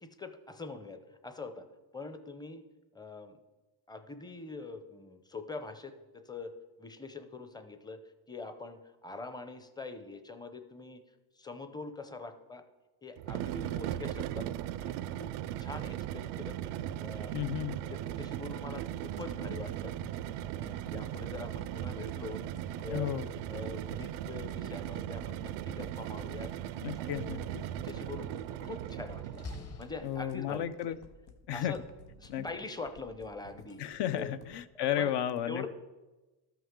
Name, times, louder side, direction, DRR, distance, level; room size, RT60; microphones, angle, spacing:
voice 1, 0.0-1.7 1.9-2.6 2.9-3.4 3.9-6.5 6.8-8.0 8.3-11.0 11.4-12.6 13.0-14.4 14.8-15.3 15.6-16.6 17.0-17.3 17.8-19.9 20.5-22.4 22.8-23.1 23.5-26.5 27.0-27.4 27.7-28.3 28.6-29.4 29.8-30.9 31.5-31.8 32.2-33.8 34.1-34.3 34.7-35.1 35.5-35.7, left 3 dB, 10° left, 8 dB, 0.6 m, -43 dB
sound 1, 13.2-29.6, right 12 dB, 85° right, 0.5 m, -38 dB
voice 2, 17.3-17.8 22.9-23.3 26.8-27.7 30.0-31.0 31.5-31.7 32.3-32.5 33.8-35.7, left 11 dB, 60° left, 13 dB, 0.6 m, -33 dB
sound 2, 19.2-34.6, left 4 dB, 85° left, 1.0 m, -54 dB
Slam, 26.1-30.7, left 2 dB, 35° left, 1.2 m, -50 dB
13.0 x 5.9 x 3.7 m, 1.1 s
cardioid pair, 100°, 46 cm